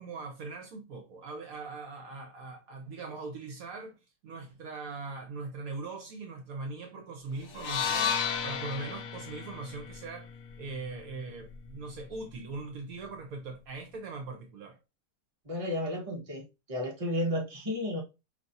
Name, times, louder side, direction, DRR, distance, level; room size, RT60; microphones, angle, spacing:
voice 1, 0.0-4.0 4.2-10.3 10.6-14.8, right 3 dB, 65° right, 1.3 m, -41 dB
sound 1, 7.5-11.7, left 7 dB, 85° left, 1.2 m, -34 dB
voice 2, 15.4-16.4 16.7-18.0, left 1 dB, 25° right, 1.2 m, -32 dB
5.1 x 3.1 x 2.6 m
omnidirectional pair, 1.6 m